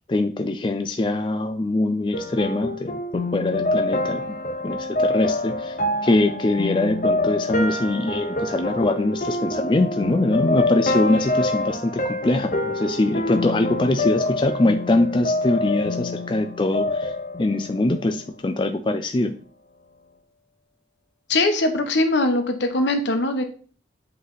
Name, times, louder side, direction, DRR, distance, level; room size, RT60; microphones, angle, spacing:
voice 1, 0.1-3.0 3.3-4.2 4.6-5.7 6.0-17.1 17.4-19.3, left 2 dB, 25° left, 6 dB, 0.4 m, -23 dB
sound 1, 2.1-18.2, left 2 dB, 45° left, 0.8 m, -26 dB
voice 2, 21.3-23.4, left 2 dB, 80° left, 6 dB, 1.0 m, -21 dB
7.8 x 3.3 x 4.0 m, 0.40 s
head